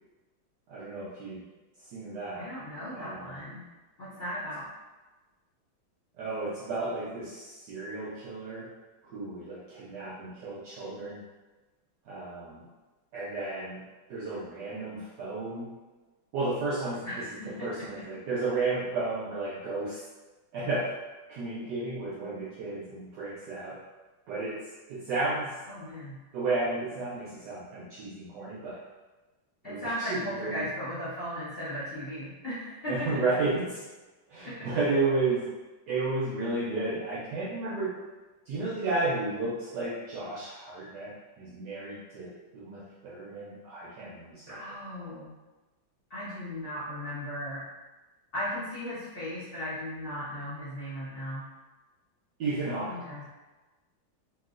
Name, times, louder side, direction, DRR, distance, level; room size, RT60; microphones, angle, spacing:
voice 1, 0.7-1.4 1.9-2.5 2.9-3.4 6.2-8.7 9.0-11.2 12.1-12.6 13.1-13.8 14.1-15.7 16.3-20.0 20.5-20.9 21.3-23.8 24.3-25.5 26.3-28.8 29.6-30.6 32.9-33.8 34.3-35.5 35.9-38.0 38.5-44.6 52.4-53.0, right 3 dB, 75° right, -7 dB, 1.0 m, -33 dB
voice 2, 2.3-3.6 4.0-4.7 17.0-17.9 25.7-26.2 29.6-33.2 34.4-34.7 44.5-45.3 46.1-47.6 48.3-51.5 52.9-53.2, equal, 75° left, -11 dB, 0.5 m, -37 dB
3.0 x 2.9 x 2.4 m, 1.2 s
omnidirectional pair, 2.3 m